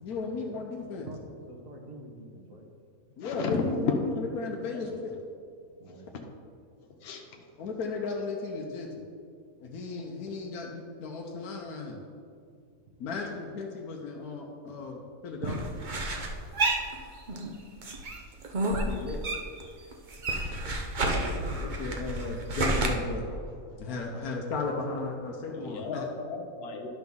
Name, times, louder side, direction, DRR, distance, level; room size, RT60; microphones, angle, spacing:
voice 1, 0.0-1.1 3.2-5.2 7.6-8.9 9.6-12.0 13.0-15.5 18.7-19.2 21.5-23.3 23.8-26.1, left 3 dB, 80° left, 0 dB, 1.3 m, -35 dB
voice 2, 0.5-1.2 1.5-2.7 5.8-6.1 15.4-15.5, right 3 dB, 65° right, 0 dB, 1.6 m, -42 dB
voice 3, 3.2-3.9 4.7-4.8 7.0-7.4 23.7-23.8 25.5-26.9, left 5 dB, 50° left, 2 dB, 1.0 m, -33 dB
sound 1, 15.4-17.5 17.8-19.7 19.9-22.9, right 2 dB, 40° right, 0.8 m, -30 dB
11.5 x 6.0 x 3.7 m, 2.3 s
omnidirectional pair, 1.5 m